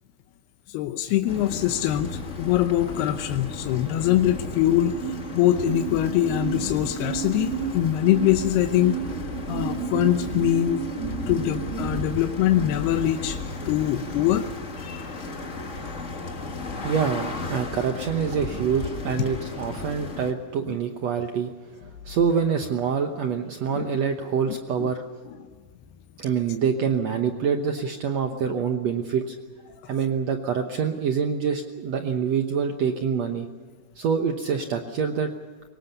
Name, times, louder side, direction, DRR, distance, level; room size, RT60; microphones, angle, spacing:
voice 1, 0.7-10.8 11.2-13.4 13.7-14.5 14.8-15.1 16.7-16.8 23.7-23.8 24.5-24.9 25.3-25.4 29.8-29.9, left 12 dB, 80° left, 7 dB, 2.9 m, -23 dB
sound 1, 1.3-20.3, left 3 dB, 45° left, 0.9 m, -35 dB
sound 2, 4.8-12.0, right 9 dB, 40° right, 2.4 m, -33 dB
voice 2, 16.8-21.5 22.0-25.0 26.2-29.3 29.9-33.5 34.0-35.3, right 6 dB, 75° right, 5 dB, 1.5 m, -26 dB
23.5 x 20.0 x 6.9 m, 1.5 s
omnidirectional pair, 4.6 m